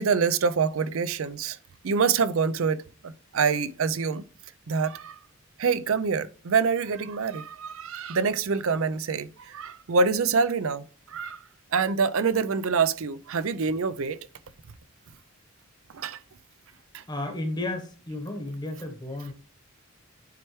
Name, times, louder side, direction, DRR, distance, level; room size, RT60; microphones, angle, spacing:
voice 1, 0.0-1.6 1.8-4.2 4.7-5.2 5.6-11.4 11.7-14.2 15.9-16.2 16.9-17.0, right 5 dB, 70° right, 0.5 m, -26 dB
voice 2, 17.1-19.3, left 2 dB, 20° left, 1.0 m, -33 dB
9.4 x 4.5 x 3.1 m
head